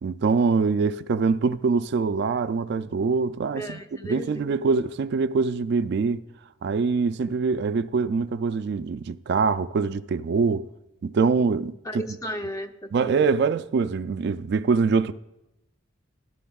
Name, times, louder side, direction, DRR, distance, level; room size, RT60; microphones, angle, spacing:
voice 1, 0.0-6.2 6.6-10.7 11.0-12.0 12.9-15.1, right 4 dB, 60° right, 0.3 m, -24 dB
voice 2, 3.5-4.4 11.8-13.2, equal, 15° left, 0.6 m, -35 dB
15.0 x 12.0 x 2.3 m
head